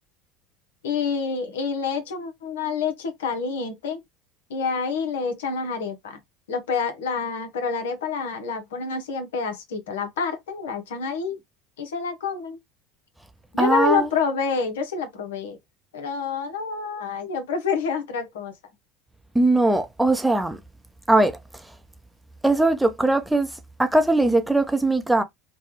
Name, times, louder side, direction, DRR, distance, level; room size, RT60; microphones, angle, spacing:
voice 1, 0.8-4.0 4.5-6.2 6.5-11.4 11.8-12.6 13.5-15.6 15.9-18.5, left 5 dB, 80° left, 0.7 m, -27 dB
voice 2, 13.6-14.1 19.3-20.6 21.1-21.7 22.4-25.2, right 2 dB, 5° right, 0.6 m, -20 dB
3.2 x 2.2 x 2.8 m
hypercardioid pair, 75°, 0 cm